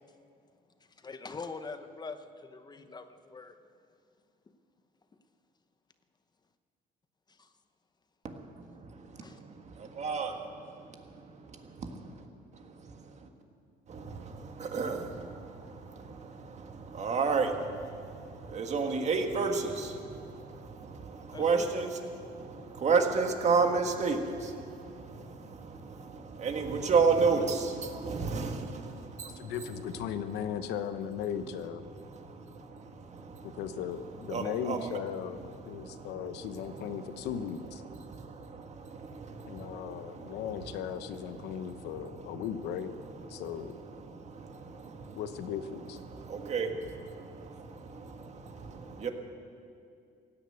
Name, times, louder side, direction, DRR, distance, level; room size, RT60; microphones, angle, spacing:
voice 1, 1.0-3.6 7.4-7.5 9.2-9.4 21.3-21.7, left 4 dB, 25° left, 9 dB, 0.9 m, -43 dB
voice 2, 8.8-9.2 9.8-10.4 10.6-10.7 11.5-12.1 13.9-29.5 32.1-33.6 34.3-34.9 35.8-36.2 36.8-37.0 38.0-40.4 41.5-41.7 43.3-43.4 44.1-45.2 46.1-49.1, right 4 dB, 40° right, 4 dB, 1.7 m, -32 dB
voice 3, 29.4-31.8 33.4-37.8 39.4-42.9 43.3-43.8 45.1-46.0, left 8 dB, 85° left, 11 dB, 0.9 m, -37 dB
16.5 x 10.0 x 8.1 m, 2.4 s
cardioid pair, 110°, 17 cm